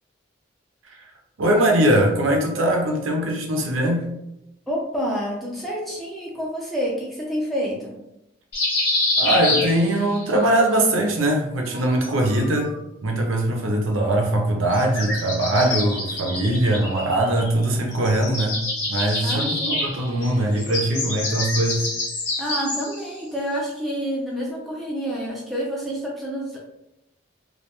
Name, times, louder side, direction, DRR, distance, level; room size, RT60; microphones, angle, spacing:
voice 1, 1.4-4.1 9.2-12.7 13.0-18.6 18.9-21.8, right 1 dB, 85° right, 1 dB, 0.5 m, -21 dB
voice 2, 4.7-8.0 19.2-19.8 22.4-26.6, equal, ahead, -5 dB, 0.5 m, -28 dB
sound 1, 8.5-10.3 11.7-12.7 14.7-17.6 17.9-23.1, left 2 dB, 55° left, 0.8 m, -27 dB
2.3 x 2.1 x 2.8 m, 0.85 s
head